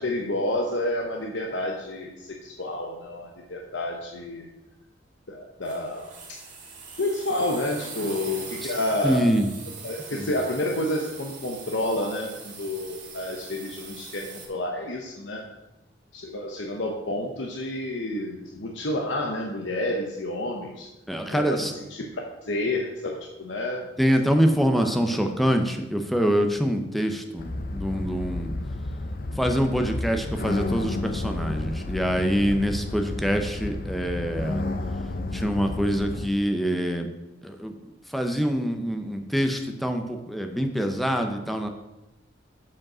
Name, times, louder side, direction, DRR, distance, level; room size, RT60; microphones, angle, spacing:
voice 1, 0.0-4.5 5.3-6.1 7.0-9.3 9.8-15.4 16.1-20.9 21.3-22.0 22.4-23.8 24.4-24.9, left 1 dB, 75° left, 1 dB, 0.9 m, -29 dB
sound 1, 5.6-14.5, right 4 dB, 40° right, 2.0 m, -42 dB
voice 2, 9.0-9.5 10.1-10.3 21.1-21.7 24.0-28.5 29.3-34.6 35.3-37.1 37.4-37.7 38.1-41.7, equal, ahead, 5 dB, 0.7 m, -25 dB
sound 2, 27.4-36.3, left 2 dB, 50° left, 0.6 m, -31 dB
7.3 x 5.2 x 6.1 m, 0.99 s
head